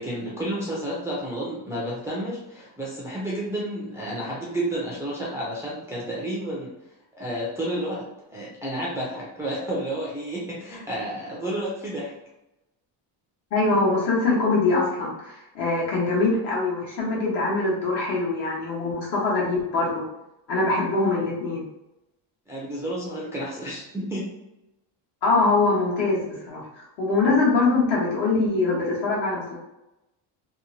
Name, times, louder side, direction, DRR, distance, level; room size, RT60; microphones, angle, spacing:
voice 1, 0.0-6.7 7.1-12.1 22.5-24.3, right 1 dB, 5° right, -6 dB, 0.3 m, -31 dB
voice 2, 13.5-20.1 20.5-21.7 25.2-29.6, left 3 dB, 60° left, -5 dB, 1.2 m, -23 dB
2.9 x 2.0 x 2.6 m, 0.93 s
cardioid pair, 140°, 46 cm